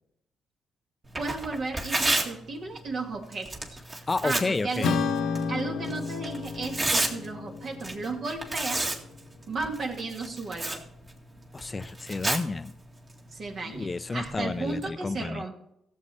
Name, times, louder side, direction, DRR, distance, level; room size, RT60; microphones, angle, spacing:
Tearing, 1.0-14.9, right 2 dB, 30° right, 2.1 m, -34 dB
voice 1, 1.2-3.5 4.2-4.9 5.5-8.9 9.5-10.8 13.3-15.5, right 3 dB, 60° right, 2 dB, 2.2 m, -34 dB
voice 2, 4.1-4.9 11.5-12.7 13.7-15.4, left 3 dB, 30° left, 13 dB, 0.5 m, -31 dB
Acoustic guitar / Strum, 4.8-9.5, left 5 dB, 70° left, 0.9 m, -32 dB
16.5 x 7.4 x 4.4 m, 0.79 s
supercardioid pair, 55°, 0 cm